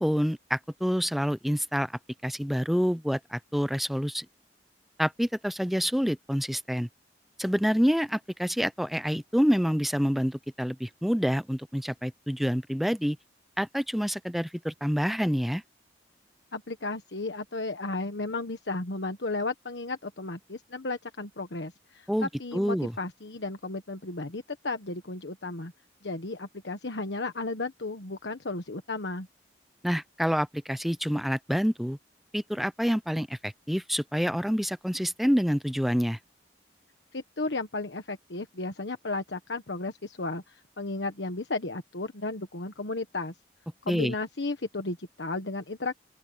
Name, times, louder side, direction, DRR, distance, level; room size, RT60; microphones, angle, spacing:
voice 1, 0.0-1.9 2.2-4.3 5.0-6.9 7.4-13.2 13.6-15.6 22.1-22.9 29.8-32.0 32.3-36.2 43.9-44.1, equal, ahead, 0.4 m, -27 dB
voice 2, 16.5-25.7 26.0-29.3 37.1-43.3 43.8-45.9, left 2 dB, 80° left, 1.3 m, -34 dB
open air
head